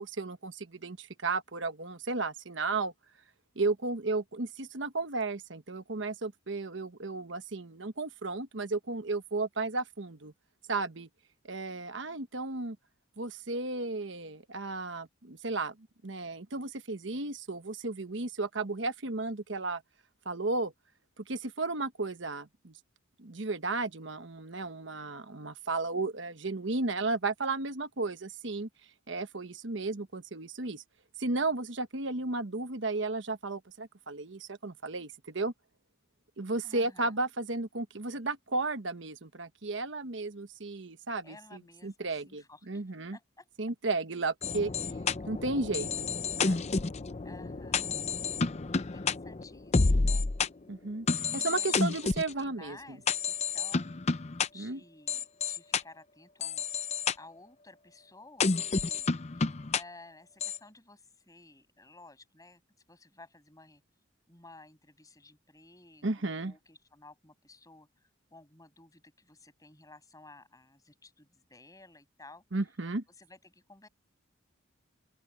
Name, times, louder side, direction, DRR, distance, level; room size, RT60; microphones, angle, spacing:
voice 1, 0.0-2.9 3.5-10.3 10.7-11.1 11.4-12.8 13.2-15.7 16.0-19.8 20.2-20.7 21.2-22.7 23.2-28.7 29.1-30.8 31.2-35.5 36.4-43.2 43.6-44.7 45.3-46.6 50.7-53.0 54.5-54.8 66.0-66.5 72.5-73.0, right 3 dB, 65° right, 1.2 m, -34 dB
voice 2, 36.6-37.2 41.2-42.8 43.1-43.5 47.2-48.0 48.8-50.3 51.3-53.9 54.5-56.7 57.1-59.1 59.7-62.6 62.9-63.8 64.3-72.4 73.2-73.9, left 2 dB, 15° left, 7.9 m, -54 dB
sound 1, 44.4-50.5 51.1-52.3 53.1-54.5 55.1-55.8 56.4-57.1 58.4-59.8 60.4-60.6, left 4 dB, 35° left, 0.6 m, -30 dB
open air
head